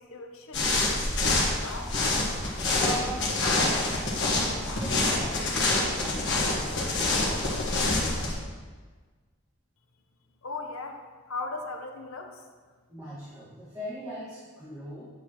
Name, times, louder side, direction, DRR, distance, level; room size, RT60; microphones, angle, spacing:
voice 1, 0.0-1.9 10.4-11.0 11.3-12.4, left 3 dB, 70° left, 4 dB, 0.8 m, -38 dB
sound 1, 0.5-8.3, left 2 dB, 50° left, 1.5 m, -26 dB
voice 2, 2.7-4.1 4.6-7.6 12.9-15.1, equal, 15° right, -11 dB, 1.7 m, -40 dB
9.0 x 7.0 x 3.0 m, 1.4 s
head